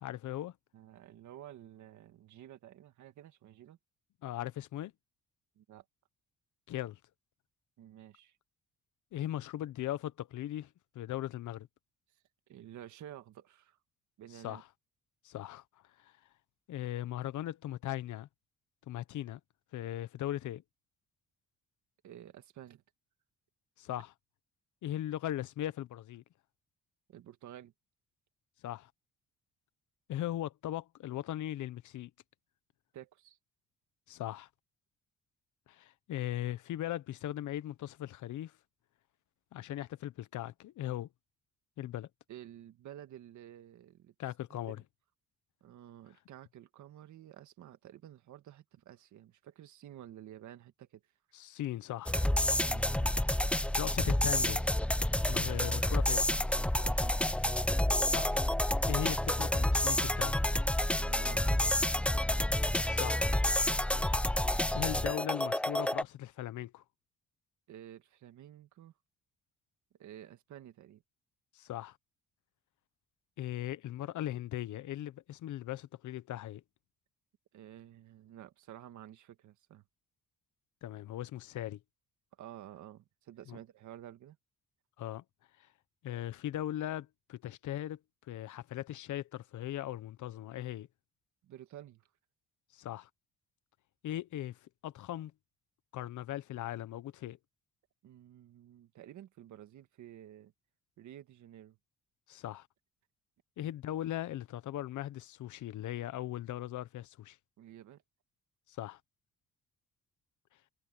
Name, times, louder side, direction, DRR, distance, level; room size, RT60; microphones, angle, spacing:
voice 1, 0.0-0.5 4.2-4.9 6.7-7.0 9.1-10.7 10.9-11.7 14.4-14.6 15.2-15.6 16.7-18.3 18.9-19.4 19.7-20.6 23.8-24.1 24.8-26.2 28.6-28.9 30.1-32.1 34.1-34.5 35.7-38.5 39.5-41.1 41.8-42.1 44.2-44.8 51.3-52.1 53.8-54.6 55.3-56.3 58.1-58.4 58.9-60.3 62.8-63.3 64.7-66.8 71.5-72.0 73.4-76.6 80.8-81.8 83.5-83.6 85.0-85.2 86.0-88.0 88.3-90.9 92.7-93.1 94.0-94.6 94.8-95.3 95.9-97.4 102.3-102.7 103.6-107.4 108.7-109.0, left 13 dB, 75° left, 1.1 m, -38 dB
voice 2, 0.7-3.8 5.6-5.8 7.8-8.4 12.5-13.8 14.2-14.6 22.0-22.8 27.1-27.7 32.9-33.4 42.3-44.1 45.6-51.0 52.6-53.3 55.5-55.7 56.8-57.3 60.9-61.8 67.7-68.9 70.0-71.0 77.5-79.8 82.4-84.4 91.4-92.1 98.0-100.5 101.0-101.8 107.6-108.0, right 11 dB, 75° right, 1.9 m, -51 dB
sound 1, 52.1-66.0, left 1 dB, 5° left, 0.7 m, -29 dB
cardioid pair, 90°, 30 cm